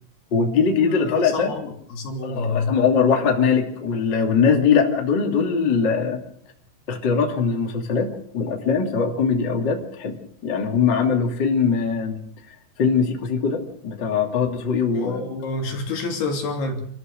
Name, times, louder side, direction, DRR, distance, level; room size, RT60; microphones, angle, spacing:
voice 1, 0.3-1.5 2.2-6.2 6.9-8.1 8.3-10.2 10.4-12.2 12.8-15.2, left 5 dB, 30° left, 1 dB, 2.5 m, -21 dB
voice 2, 1.0-2.8 14.9-16.9, left 3 dB, 55° left, 2 dB, 4.6 m, -28 dB
27.5 x 14.5 x 6.7 m, 0.65 s
omnidirectional pair, 5.7 m